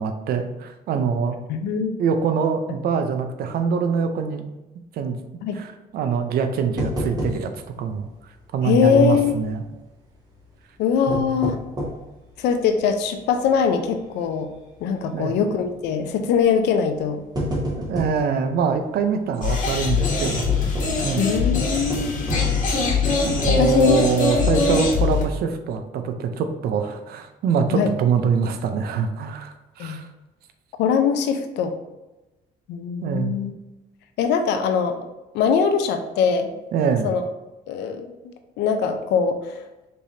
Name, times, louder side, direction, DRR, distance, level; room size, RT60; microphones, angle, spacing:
voice 1, 0.0-1.4 2.0-4.4 4.9-5.2 5.5-7.5 7.8-8.1 8.5-9.6 11.1-11.5 15.1-15.3 17.9-20.5 21.0-21.3 22.3-22.4 23.2-30.1 33.0-33.3 36.7-37.1, right 6 dB, 65° right, 7 dB, 0.6 m, -24 dB
voice 2, 1.5-2.0 5.4-5.6 8.6-9.4 10.8-11.6 12.4-14.5 14.8-17.2 21.2-22.1 23.5-24.0 27.7-27.9 29.8-30.0 30.8-31.7 32.7-33.5 34.2-35.1 35.3-36.5 37.0-37.2 37.7-38.1 38.6-39.6, left 6 dB, 85° left, 7 dB, 0.6 m, -22 dB
sound 1, 6.8-7.7 8.0-8.1 8.8-9.5 10.9-12.1 12.7-12.8 13.4-13.7 14.0-14.1 15.2-15.5 16.4-16.6 17.0-18.3 20.0-21.1 21.9-22.9 23.4-23.5 23.9-24.0, equal, 25° right, 1.3 m, -30 dB
sound 2, 19.4-25.2, left 4 dB, 50° left, 1.3 m, -22 dB
5.3 x 3.3 x 2.7 m, 1.0 s
cardioid pair, 110°, 17 cm